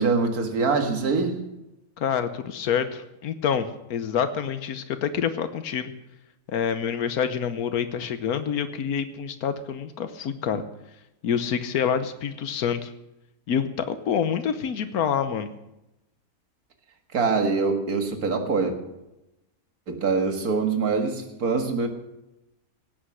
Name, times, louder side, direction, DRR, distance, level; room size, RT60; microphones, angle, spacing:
voice 1, 0.0-1.4 17.1-18.7 19.9-21.9, right 4 dB, 90° right, 5 dB, 2.2 m, -24 dB
voice 2, 2.0-5.9 6.5-10.6 11.2-12.9 13.5-15.5, left 7 dB, 90° left, 10 dB, 1.4 m, -27 dB
17.5 x 8.7 x 6.3 m, 0.93 s
omnidirectional pair, 1.5 m